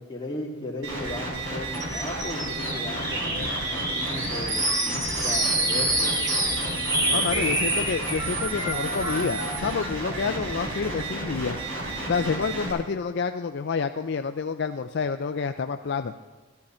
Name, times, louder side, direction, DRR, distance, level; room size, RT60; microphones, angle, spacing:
voice 1, 0.0-6.4 7.0-7.6, left 1 dB, 20° left, -2 dB, 2.1 m, -36 dB
sound 1, 0.8-12.7, right 2 dB, 75° right, 4.4 m, -32 dB
sound 2, 1.7-9.7, right 1 dB, 15° right, 1.3 m, -27 dB
voice 2, 7.1-11.6 12.1-16.1, left 5 dB, 55° left, 8 dB, 0.4 m, -28 dB
13.5 x 13.0 x 4.3 m, 1.3 s
head